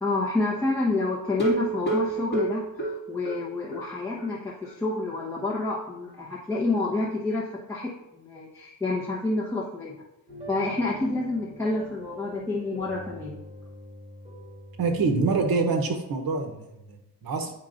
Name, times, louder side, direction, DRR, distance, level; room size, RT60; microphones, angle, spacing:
voice 1, 0.0-9.9 10.5-13.4, left 2 dB, 10° left, -7 dB, 1.0 m, -28 dB
sound 1, 1.3-3.9 4.2-4.3 4.6-4.7 5.1-5.2, right 3 dB, 25° left, 1.9 m, -29 dB
sound 2, 10.3-15.4, left 1 dB, 15° right, 1.3 m, -44 dB
voice 2, 14.8-17.5, right 4 dB, 65° right, 4 dB, 0.9 m, -26 dB
8.9 x 5.5 x 2.5 m, 0.92 s
wide cardioid pair, 165°, 38 cm